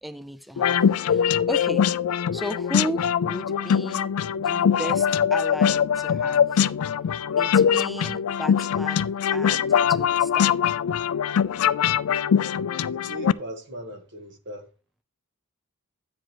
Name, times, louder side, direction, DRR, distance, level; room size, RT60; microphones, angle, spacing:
voice 1, 0.0-0.8 1.0-1.9 2.3-6.7 7.4-10.5, equal, ahead, 0.4 m, -35 dB
sound 1, 0.6-13.3, left 8 dB, 70° left, 0.4 m, -22 dB
voice 2, 13.0-14.7, right 1 dB, 60° right, 1.5 m, -39 dB
9.0 x 7.5 x 3.0 m
head